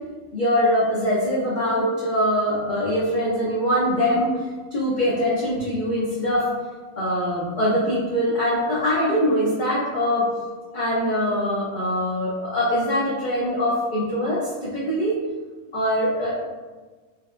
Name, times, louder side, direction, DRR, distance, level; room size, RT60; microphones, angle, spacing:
voice 1, 0.3-4.4 4.7-6.5 7.0-10.3 10.7-15.2 15.7-16.3, equal, 50° left, -7 dB, 0.6 m, -23 dB
4.2 x 2.2 x 2.4 m, 1.3 s
omnidirectional pair, 1.5 m